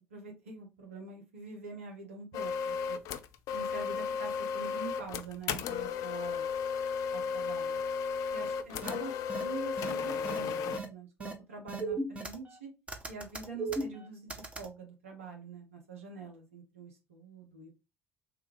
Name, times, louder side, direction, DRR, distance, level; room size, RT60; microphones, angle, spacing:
voice 1, 0.0-3.0 3.5-6.5 7.1-7.8 8.3-9.1 9.4-12.7 13.1-17.7, right 4 dB, 85° right, 2 dB, 0.7 m, -45 dB
sound 1, 2.3-10.8, left 6 dB, 60° left, 0.4 m, -34 dB
sound 2, 8.8-8.9 9.3-9.4 9.8-9.9 10.2-10.4 10.7-10.9 11.2-11.3 11.7-12.6 12.9-14.7, right 3 dB, 20° right, 0.7 m, -36 dB
3.5 x 2.3 x 3.1 m, 0.27 s
hypercardioid pair, 55°, 7 cm